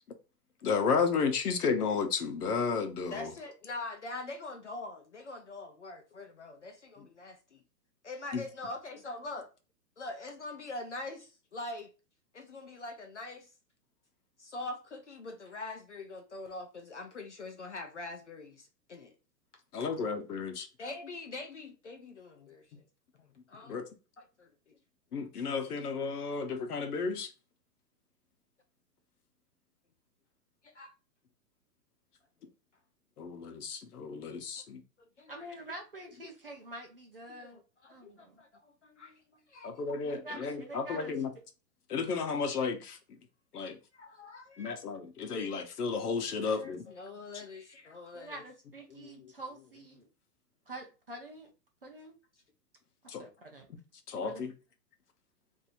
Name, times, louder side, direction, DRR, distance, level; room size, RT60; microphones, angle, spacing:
voice 1, 0.6-3.3 8.3-8.4 19.7-20.7 23.7-23.8 25.1-27.3 33.2-34.8 39.6-41.3 41.9-43.0 43.5-43.8 44.6-46.8 53.1-53.2 54.1-54.5, left 5 dB, 65° left, 0.9 m, -32 dB
voice 2, 3.1-7.6 8.0-9.5 10.0-11.9 12.3-13.5 14.4-19.1 19.8-19.9 20.8-22.8 23.1-23.8 24.2-24.8 30.6-30.9 35.0-35.5 37.4-39.7 40.3-40.4 43.9-44.8 46.4-48.4 48.9-49.3, left 2 dB, 45° left, 0.5 m, -44 dB
voice 3, 35.3-37.6 37.9-38.4 40.0-41.2 48.1-50.1 50.7-51.5 51.8-52.1 53.0-53.7 54.2-54.5, right 1 dB, 35° right, 0.5 m, -46 dB
2.7 x 2.6 x 4.1 m
hypercardioid pair, 180°, 50 cm